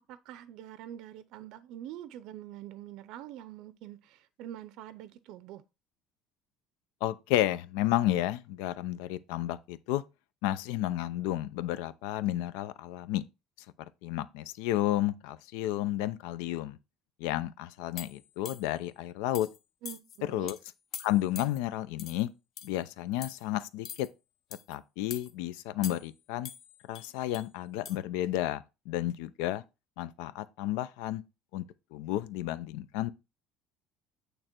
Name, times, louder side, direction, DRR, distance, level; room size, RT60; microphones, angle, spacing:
voice 1, 0.1-5.6 19.8-20.5, right 11 dB, 55° right, 0.5 m, -45 dB
voice 2, 7.0-10.0 10.4-13.2 14.0-16.8 17.2-19.5 20.2-20.6 21.0-22.3 22.6-24.1 24.7-26.5 26.9-29.6 30.0-31.2 31.5-31.6 31.9-33.1, left 14 dB, 90° left, 0.6 m, -32 dB
sound 1, 18.0-18.8 19.3-19.6 19.9-20.2 20.5-20.6 20.9-21.6 22.0-22.2 22.6-22.8 23.2-23.4 23.8-24.1 24.5-24.8 25.1-25.3 25.8-26.2 26.4-27.5 27.9-28.0, left 8 dB, 40° left, 0.7 m, -44 dB
8.8 x 3.3 x 4.4 m
cardioid pair, 175°, 0 cm